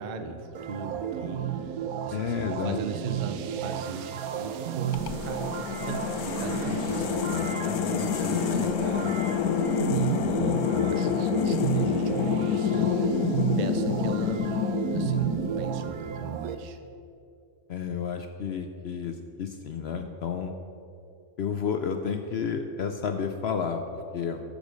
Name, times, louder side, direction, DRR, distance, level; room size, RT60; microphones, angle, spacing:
voice 1, 0.0-13.3 13.6-14.5 14.9-16.8, right 4 dB, 45° right, 7 dB, 0.6 m, -38 dB
sound 1, 0.5-16.5, right 9 dB, 80° right, 1.1 m, -32 dB
voice 2, 2.1-2.8 17.7-20.5 21.4-24.4, left 6 dB, 60° left, 6 dB, 0.7 m, -31 dB
sound 2, 4.9-16.0, left 9 dB, 90° left, 1.1 m, -28 dB
13.5 x 5.1 x 6.3 m, 2.5 s
omnidirectional pair, 1.5 m